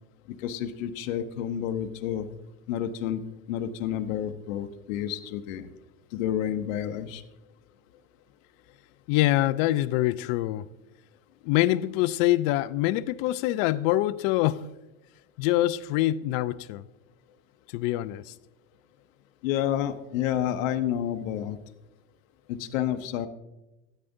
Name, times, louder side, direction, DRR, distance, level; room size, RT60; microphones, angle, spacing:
voice 1, 0.4-2.3 2.7-3.2 3.5-5.7 6.1-7.2 19.4-21.6 22.5-23.3, left 10 dB, 75° left, 0.8 m, -29 dB
voice 2, 9.1-10.7 11.4-14.7 15.4-16.9 17.7-18.3, left 15 dB, 55° left, 0.5 m, -25 dB
13.5 x 9.1 x 2.6 m
supercardioid pair, 100°, 39 cm